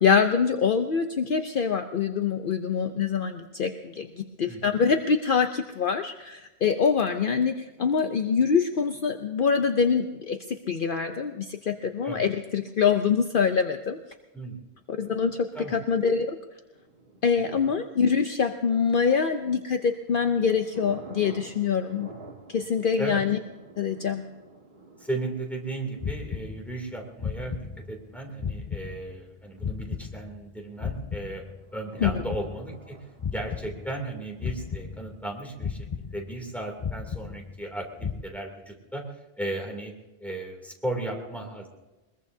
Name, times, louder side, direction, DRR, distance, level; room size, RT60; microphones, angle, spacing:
voice 1, 0.0-14.0 14.9-16.4 17.2-22.1 22.5-23.4 23.8-24.2 32.0-32.1, left 6 dB, 55° left, 6 dB, 0.8 m, -25 dB
sound 1, 16.7-19.3 19.8-29.3 30.7-34.8, right 3 dB, 50° right, 2.0 m, -50 dB
voice 2, 17.4-17.7 23.0-23.2 25.0-31.4 31.7-33.0 33.3-39.0 39.4-39.9 40.2-41.7, right 2 dB, ahead, 1 dB, 2.8 m, -35 dB
sound 2, 26.0-26.9 27.2-28.1 28.4-30.5 30.8-32.9 33.2-34.1 34.4-35.3 35.6-36.5 36.8-37.7 38.0-38.2, left 6 dB, 40° left, 0.4 m, -35 dB
22.0 x 21.5 x 2.7 m, 1.1 s
omnidirectional pair, 1.1 m